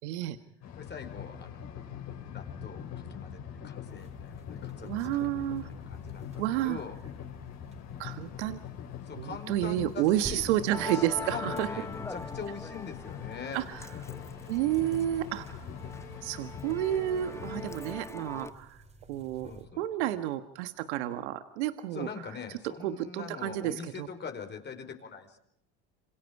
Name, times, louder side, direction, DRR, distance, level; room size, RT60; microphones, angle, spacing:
voice 1, 0.0-0.4 4.8-5.7 6.4-6.8 8.0-8.6 9.2-11.7 13.5-13.9 14.5-15.5 16.2-18.8 19.1-22.1 22.8-24.1, right 13 dB, 75° right, 10 dB, 1.6 m, -30 dB
sound 1, 0.6-18.0, left 8 dB, 50° left, 7.0 m, -43 dB
voice 2, 0.8-1.7 2.3-2.8 3.1-7.0 7.7-8.6 9.0-10.5 10.9-13.6 19.4-19.8 21.9-25.4, left 6 dB, 30° left, 6 dB, 4.9 m, -43 dB
sound 2, 3.8-19.7, right 1 dB, 20° right, 4.5 m, -53 dB
Musical instrument, 10.7-18.5, left 2 dB, 10° left, 1.0 m, -42 dB
27.5 x 27.0 x 4.7 m, 0.74 s
hypercardioid pair, 90°, 34 cm